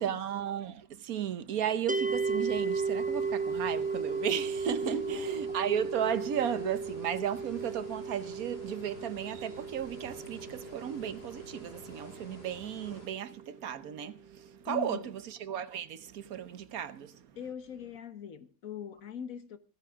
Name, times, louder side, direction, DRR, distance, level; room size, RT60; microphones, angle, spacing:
voice 1, 0.0-17.3, right 9 dB, 80° right, 1.4 m, -35 dB
sound 1, 1.9-13.0, right 4 dB, 15° right, 0.3 m, -35 dB
sound 2, 2.0-13.1, equal, 40° left, 5.3 m, -50 dB
voice 2, 4.8-5.3 14.7-15.1 17.3-19.6, left 6 dB, 70° left, 1.6 m, -41 dB
27.5 x 9.8 x 3.7 m
omnidirectional pair, 1.5 m